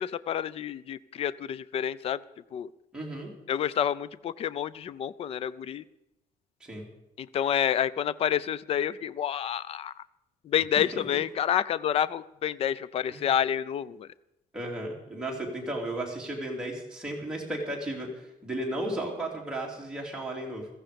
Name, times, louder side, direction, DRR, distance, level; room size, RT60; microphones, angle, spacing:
voice 1, 0.0-2.2 2.5-2.7 3.5-5.8 7.2-9.9 10.4-14.1, left 9 dB, 40° left, 19 dB, 0.4 m, -29 dB
voice 2, 2.9-3.3 6.6-6.8 10.9-11.2 13.1-13.2 14.5-20.7, right 1 dB, 5° right, -2 dB, 3.1 m, -34 dB
16.0 x 15.0 x 5.2 m, 0.89 s
cardioid pair, 175°, 15 cm